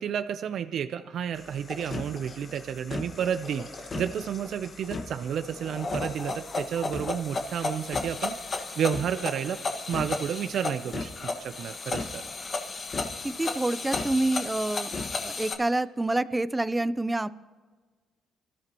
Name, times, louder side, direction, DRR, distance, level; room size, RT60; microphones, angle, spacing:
voice 1, 0.0-8.3 8.8-9.6 9.9-11.1 11.4-12.2, right 8 dB, 70° right, 10 dB, 0.6 m, -31 dB
sound 1, 1.3-15.5, left 3 dB, 40° left, 1.6 m, -34 dB
voice 2, 13.2-14.9 15.2-17.3, right 2 dB, 15° right, 15 dB, 0.6 m, -27 dB
26.0 x 13.0 x 3.0 m, 1.4 s
cardioid pair, 90°, 0 cm